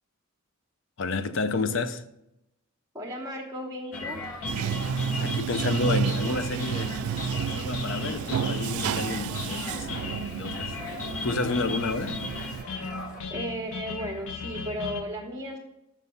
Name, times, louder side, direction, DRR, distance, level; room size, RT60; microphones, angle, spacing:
voice 1, 1.0-2.1 5.2-7.0 7.5-10.7 11.2-12.2, left 3 dB, 60° left, 0.5 m, -30 dB
voice 2, 2.9-4.2 13.3-15.6, equal, 20° right, 0.9 m, -35 dB
sound 1, 3.9-15.0, left 4 dB, 90° left, 0.8 m, -36 dB
sound 2, 3.9-13.2, equal, 40° left, 1.5 m, -43 dB
Bathtub (filling or washing), 4.4-12.6, right 7 dB, 90° right, 0.3 m, -31 dB
6.8 x 6.1 x 5.6 m
head